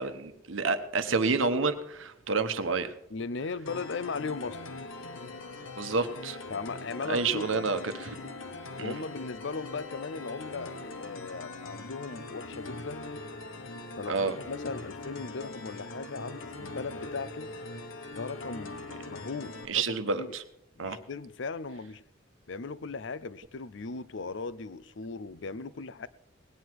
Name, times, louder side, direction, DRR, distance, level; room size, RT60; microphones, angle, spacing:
voice 1, 0.0-2.9 5.8-6.4 7.0-8.2 8.8-8.9 14.1-14.3 19.7-20.4 20.8-21.0, right 4 dB, 75° right, 1.1 m, -29 dB
voice 2, 3.1-4.7 6.5-7.7 8.8-13.0 13.9-17.5 18.1-18.8 19.1-20.3 20.8-22.0 22.5-26.1, left 4 dB, 60° left, 0.6 m, -38 dB
sound 1, 3.7-19.7, left 3 dB, 80° left, 1.1 m, -42 dB
19.0 x 9.7 x 4.6 m
head